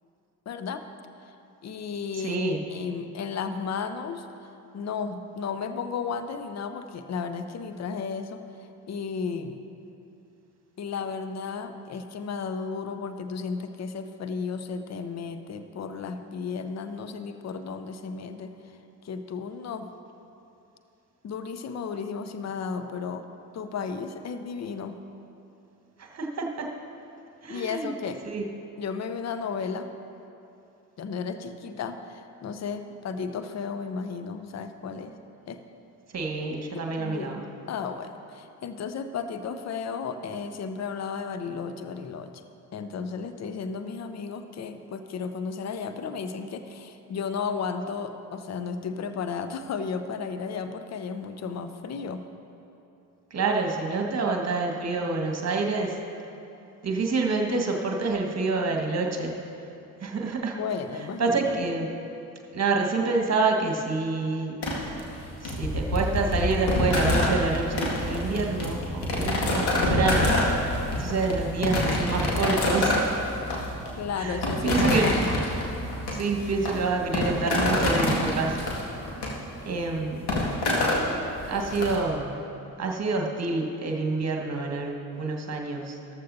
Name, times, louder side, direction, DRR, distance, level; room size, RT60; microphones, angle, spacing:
voice 1, 0.5-0.8 1.3-1.4 1.6-4.3 4.7-9.6 10.8-18.7 19.0-19.9 21.2-23.3 23.5-25.0 27.5-28.2 28.8-29.9 31.0-35.2 35.5-35.6 36.7-37.3 37.7-42.3 42.7-52.2 60.5-61.8 74.0-75.2 81.5-81.8 83.0-83.2, left 5 dB, 35° left, 8 dB, 0.8 m, -34 dB
voice 2, 2.2-2.6 26.0-26.7 27.4-27.9 28.2-28.5 36.1-37.4 53.3-56.0 56.8-59.3 60.0-60.6 61.2-61.9 62.5-64.6 65.4-70.3 71.0-73.2 74.2-75.1 76.1-78.7 79.7-80.3 81.5-82.4 82.8-86.1, right 3 dB, 30° right, 2 dB, 1.7 m, -27 dB
sound 1, 64.6-81.9, left 1 dB, 55° left, 2.3 m, -27 dB
14.0 x 13.5 x 2.8 m, 2.8 s
figure-of-eight pair, 45°, 49 cm